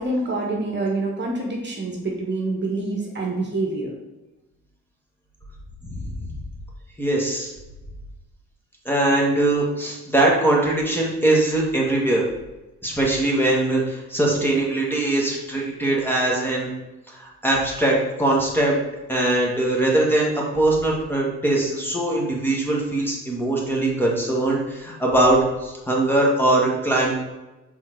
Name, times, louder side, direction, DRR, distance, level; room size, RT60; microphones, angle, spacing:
voice 1, 0.0-3.9, right 2 dB, 35° right, -1 dB, 1.4 m, -26 dB
voice 2, 5.8-6.3 7.0-7.5 8.9-12.2 12.8-16.7 17.1-18.8 19.1-27.1, right 2 dB, 5° left, -3 dB, 1.8 m, -21 dB
5.6 x 4.2 x 4.7 m, 1.0 s
cardioid pair, 90°, 30 cm